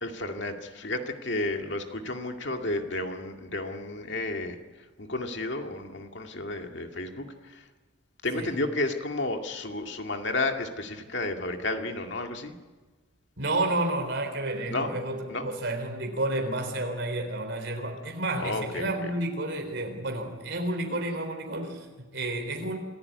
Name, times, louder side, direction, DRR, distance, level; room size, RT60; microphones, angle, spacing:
voice 1, 0.0-4.6 5.0-7.3 8.2-12.5 14.7-14.9 15.3-15.4 18.4-18.9, left 2 dB, 55° left, 4 dB, 2.1 m, -32 dB
voice 2, 13.4-22.8, right 2 dB, 55° right, 3 dB, 3.9 m, -31 dB
26.5 x 14.5 x 9.6 m, 1.3 s
head